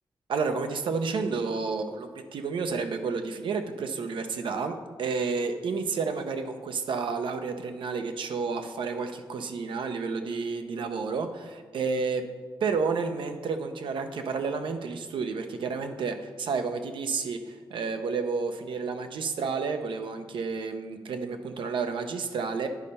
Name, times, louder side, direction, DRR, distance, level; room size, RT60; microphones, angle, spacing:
voice 1, 0.3-12.3 12.6-22.7, right 4 dB, 90° right, 7 dB, 0.7 m, -31 dB
10.5 x 4.3 x 5.3 m, 1.5 s
wide cardioid pair, 120°, 8 cm